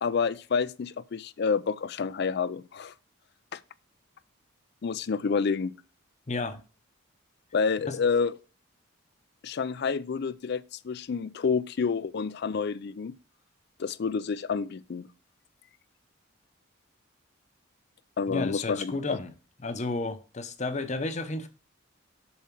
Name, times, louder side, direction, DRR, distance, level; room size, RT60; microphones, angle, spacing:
voice 1, 0.0-2.9 3.5-3.6 4.8-5.7 7.5-8.3 9.4-13.1 13.8-15.1 18.2-19.2, left 5 dB, 50° left, 0.4 m, -29 dB
voice 2, 6.3-6.6 7.8-8.0 18.3-19.3 19.6-21.5, left 3 dB, 35° left, 0.8 m, -32 dB
7.2 x 4.4 x 6.0 m
head